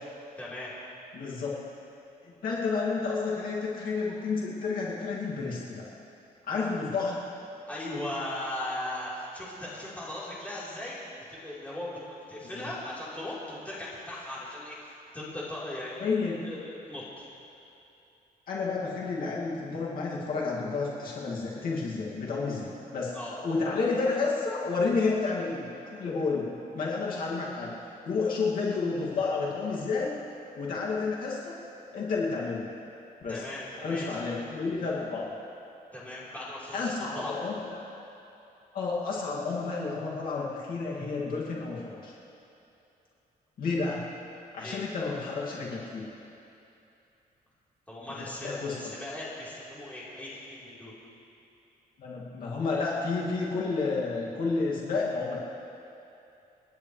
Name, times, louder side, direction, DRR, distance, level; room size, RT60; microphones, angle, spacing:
voice 1, 0.4-0.7 7.7-11.0 11.3-16.0 16.4-17.2 23.1-23.3 33.3-34.2 35.9-37.3 44.6-44.8 47.9-50.9, left 1 dB, 10° left, -8 dB, 3.9 m, -38 dB
voice 2, 1.1-1.5 2.2-5.8 6.5-7.2 12.6-12.7 16.0-16.4 18.5-23.1 23.4-27.7 28.0-30.1 30.6-31.5 31.9-32.7 33.2-33.4 33.8-35.2 36.7-37.7 38.7-42.1 43.6-44.0 44.5-46.1 48.4-48.8 52.0-55.4, left 4 dB, 60° left, -5 dB, 2.3 m, -30 dB
29.5 x 10.5 x 3.3 m, 2.8 s
cardioid pair, 150°, 16 cm